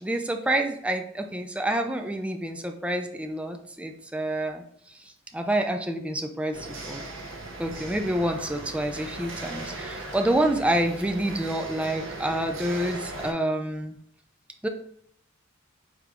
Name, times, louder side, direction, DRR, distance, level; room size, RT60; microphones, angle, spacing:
voice 1, 0.0-4.6 5.3-7.0 7.6-14.0 14.6-14.7, right 1 dB, 5° right, 5 dB, 0.3 m, -28 dB
sound 1, 6.5-13.3, right 2 dB, 65° right, 0.8 m, -38 dB
5.1 x 3.3 x 2.4 m, 0.70 s
head